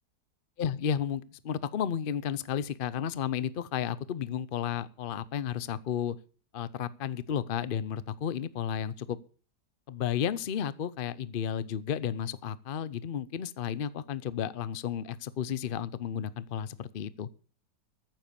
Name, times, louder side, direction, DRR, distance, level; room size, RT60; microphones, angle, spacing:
voice 1, 0.6-6.2 6.5-9.2 9.9-17.3, left 8 dB, 60° left, 16 dB, 0.5 m, -33 dB
14.5 x 7.6 x 6.9 m, 0.39 s
omnidirectional pair, 1.8 m